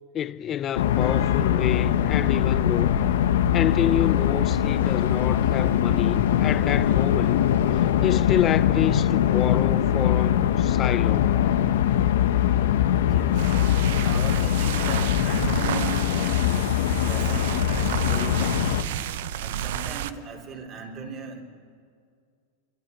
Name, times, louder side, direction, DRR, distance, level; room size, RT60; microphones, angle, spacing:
voice 1, 0.1-3.0 3.5-7.4 8.0-11.4, left 10 dB, 35° left, 0.8 m, -28 dB
sound 1, 0.8-18.8, left 10 dB, 75° left, 1.4 m, -22 dB
voice 2, 13.1-18.8 19.4-21.4, right 4 dB, 40° right, 4.1 m, -38 dB
sound 2, 13.2-20.2, right 12 dB, 70° right, 0.8 m, -32 dB
26.5 x 23.5 x 7.0 m
hypercardioid pair, 110°, 0 cm